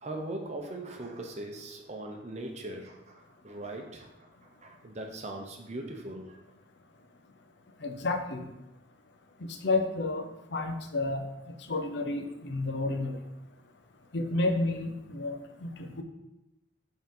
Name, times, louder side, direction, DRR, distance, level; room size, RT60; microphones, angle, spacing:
voice 1, 0.0-4.3 4.6-6.4, right 2 dB, 35° right, 2 dB, 0.8 m, -40 dB
voice 2, 7.8-8.4 9.6-11.3 11.7-13.2 14.1-16.0, left 2 dB, 55° left, 5 dB, 0.6 m, -31 dB
5.1 x 3.8 x 5.4 m, 0.95 s
head